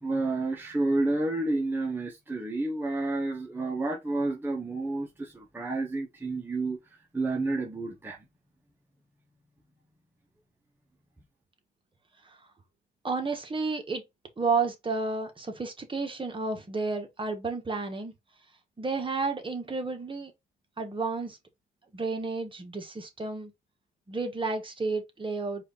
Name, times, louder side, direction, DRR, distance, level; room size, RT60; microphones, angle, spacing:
voice 1, 0.0-6.8 7.1-8.2, right 2 dB, 10° right, 1.1 m, -30 dB
voice 2, 13.0-14.0 14.4-18.1 18.8-20.3 20.8-21.4 21.9-23.5 24.1-25.6, right 4 dB, 25° right, 1.5 m, -31 dB
4.8 x 2.7 x 4.0 m
cardioid pair, 90°, 20 cm